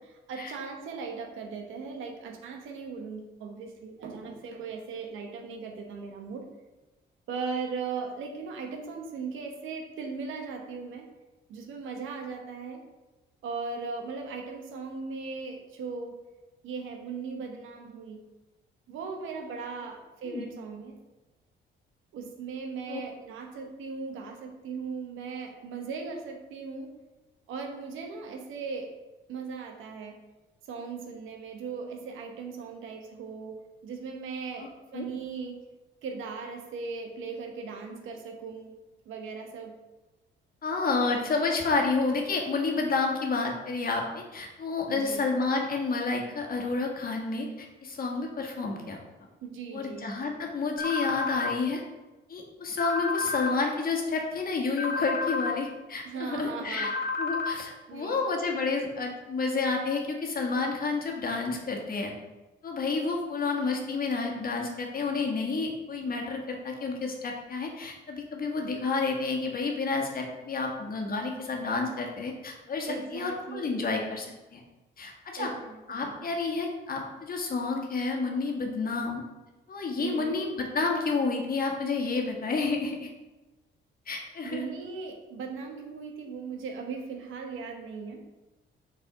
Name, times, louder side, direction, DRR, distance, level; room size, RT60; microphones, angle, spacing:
voice 1, 0.0-6.5 7.3-11.1 11.5-12.8 13.4-16.2 16.6-18.2 18.9-21.0 22.1-26.9 27.5-28.9 29.3-30.2 30.7-35.6 36.0-38.7 39.1-39.7 44.9-45.2 49.4-50.1 56.0-56.9 57.9-58.2 72.8-73.9 75.4-76.3 80.0-80.4 84.4-88.2, right 5 dB, 85° right, 3 dB, 1.0 m, -38 dB
voice 2, 40.6-49.0 49.7-51.8 52.3-56.9 57.2-62.1 62.6-74.6 75.0-75.5 75.9-79.2 79.7-83.1 84.1-84.6, left 4 dB, 45° left, 1 dB, 1.3 m, -30 dB
sound 1, 50.8-51.5 52.8-53.5 54.8-55.5 56.8-57.5, left 4 dB, 65° left, 1.0 m, -30 dB
6.4 x 4.1 x 3.7 m, 1.1 s
cardioid pair, 90°, 20 cm